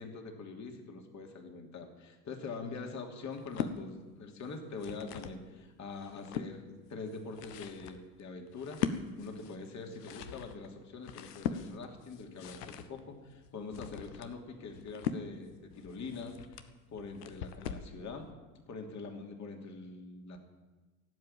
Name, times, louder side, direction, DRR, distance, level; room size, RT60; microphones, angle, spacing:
voice 1, 0.0-16.6 16.9-18.3 18.7-20.4, left 4 dB, 35° left, 3 dB, 3.0 m, -44 dB
sound 1, 3.3-3.8 4.5-5.4 5.9-6.5 7.1-17.9, left 8 dB, 70° left, 1.3 m, -40 dB
17.0 x 8.1 x 9.0 m, 1.3 s
hypercardioid pair, 75°, 49 cm